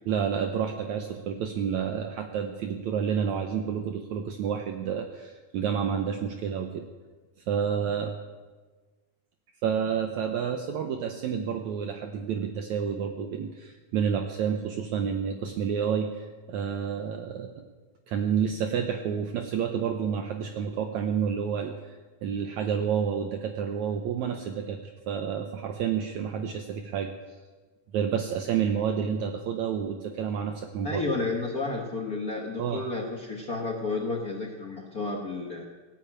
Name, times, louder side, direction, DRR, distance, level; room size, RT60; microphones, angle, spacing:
voice 1, 0.1-6.8 7.5-8.1 9.6-17.5 18.1-24.8 25.1-27.1 27.9-31.0 32.6-32.8, right 7 dB, 70° right, 4 dB, 2.0 m, -29 dB
voice 2, 30.8-35.6, left 3 dB, 75° left, 0 dB, 0.8 m, -31 dB
18.0 x 8.8 x 8.7 m, 1.3 s
omnidirectional pair, 3.9 m